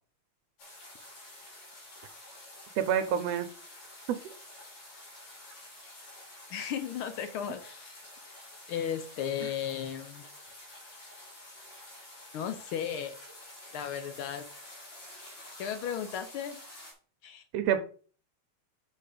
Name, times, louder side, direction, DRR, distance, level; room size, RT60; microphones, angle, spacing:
sound 1, 0.6-16.9, left 1 dB, 90° left, 4.5 m, -49 dB
voice 1, 2.8-3.5 17.5-17.8, right 9 dB, 75° right, 9 dB, 1.6 m, -27 dB
voice 2, 6.5-8.0 8.7-10.2 12.3-13.2 13.7-14.4 15.6-16.6 17.2-17.4, left 9 dB, 70° left, 9 dB, 1.2 m, -35 dB
6.7 x 5.2 x 5.1 m, 0.41 s
omnidirectional pair, 3.3 m